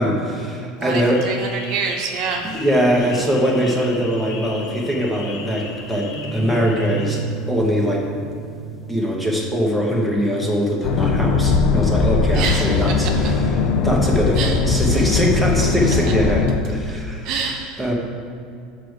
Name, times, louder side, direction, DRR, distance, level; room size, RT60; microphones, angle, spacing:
voice 1, 0.0-1.2 2.5-7.2 7.5-8.1 8.9-13.4 13.8-17.3 17.8-17.9, equal, ahead, -2 dB, 1.0 m, -21 dB
voice 2, 0.7-2.5 12.3-13.1 14.3-14.6 17.2-17.9, right 5 dB, 55° right, 1 dB, 0.9 m, -26 dB
sound 1, 0.9-7.2, left 4 dB, 75° left, 1.1 m, -38 dB
sound 2, 2.4-9.4, right 3 dB, 15° right, 0.4 m, -32 dB
sound 3, 10.8-16.6, left 4 dB, 50° left, 0.5 m, -19 dB
5.9 x 4.7 x 6.5 m, 2.4 s
supercardioid pair, 150°, 0 cm